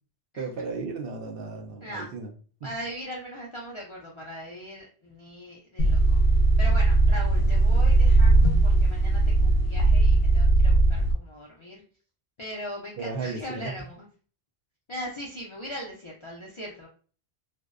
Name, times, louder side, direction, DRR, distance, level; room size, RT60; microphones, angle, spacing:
voice 1, 0.4-2.3 7.4-7.5 13.0-13.7, right 4 dB, 65° right, 2 dB, 0.7 m, -35 dB
voice 2, 2.6-6.2 6.6-11.8 12.4-14.1 14.9-16.9, equal, 45° left, -4 dB, 0.4 m, -39 dB
sound 1, 5.8-11.1, right 2 dB, 75° left, 0.8 m, -19 dB
2.6 x 2.0 x 2.4 m, 0.41 s
omnidirectional pair, 1.1 m